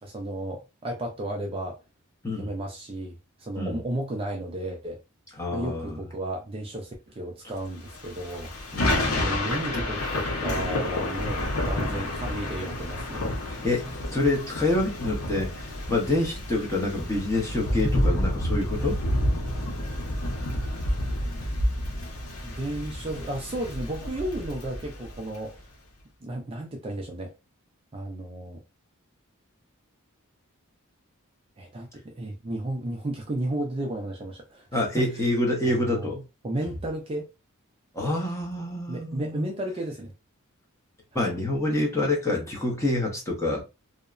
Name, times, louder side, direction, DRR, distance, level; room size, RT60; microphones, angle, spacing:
voice 1, 0.0-1.8 2.4-5.0 5.5-13.3 22.4-25.5 26.2-27.3 27.9-28.6 31.6-35.1 35.6-36.1 36.4-37.3 38.9-40.1 41.1-41.3, right 1 dB, 25° right, 0.4 m, -33 dB
voice 2, 5.4-6.0 8.7-9.2 13.5-19.0 34.7-36.2 37.9-39.5 41.1-43.6, left 2 dB, 15° left, 0.8 m, -27 dB
Thunder / Rain, 7.9-25.4, left 1 dB, 75° left, 0.8 m, -29 dB
2.7 x 2.1 x 2.4 m
head